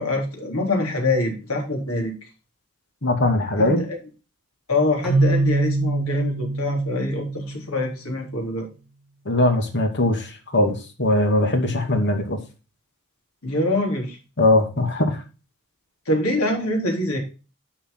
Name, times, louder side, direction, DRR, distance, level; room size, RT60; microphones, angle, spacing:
voice 1, 0.0-2.1 3.6-4.0 4.7-8.7 13.4-14.2 16.1-17.2, left 2 dB, 70° left, 2 dB, 3.7 m, -24 dB
voice 2, 3.0-3.8 9.3-12.4 14.4-15.2, left 1 dB, 55° left, 4 dB, 2.5 m, -20 dB
Keyboard (musical), 5.0-7.9, right 2 dB, ahead, 2.7 m, -23 dB
10.5 x 5.8 x 3.9 m, 0.32 s
head